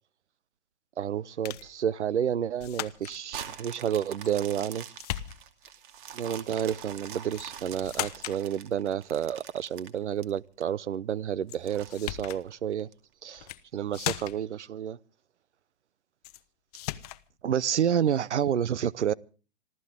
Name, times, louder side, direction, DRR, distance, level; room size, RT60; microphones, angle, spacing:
voice 1, 1.0-4.9 6.1-12.9 13.2-15.0 17.4-19.1, right 9 dB, 85° right, 0.8 m, -30 dB
sound 1, 1.4-1.7 2.6-3.2 4.2-4.7 5.0-5.7 7.3-7.5 7.8-8.4 11.5-11.6 11.9-12.4 13.3-13.6 13.9-14.5 16.2-16.4 16.7-17.2, left 16 dB, 35° left, 0.8 m, -36 dB
sound 2, 3.3-10.6 11.1-11.2 11.6-12.9 13.5-13.6, right 9 dB, 45° right, 2.5 m, -44 dB
26.5 x 14.0 x 3.6 m
hypercardioid pair, 135°, 34 cm